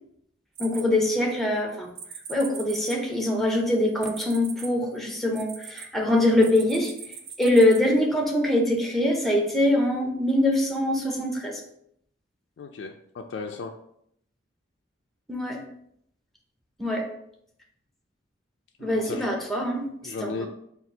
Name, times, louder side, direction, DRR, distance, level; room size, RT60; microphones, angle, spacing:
voice 1, 0.6-1.9 2.3-6.9 7.4-11.6 15.3-15.6 16.8-17.1 18.8-20.5, left 1 dB, ahead, 1 dB, 0.5 m, -23 dB
sound 1, 0.6-1.4 2.0-5.9 6.4-7.8, right 7 dB, 85° right, 0.5 m, -40 dB
voice 2, 12.6-13.7 18.8-19.3 20.0-20.5, left 4 dB, 65° left, 3 dB, 0.3 m, -35 dB
4.3 x 2.4 x 3.9 m, 0.72 s
head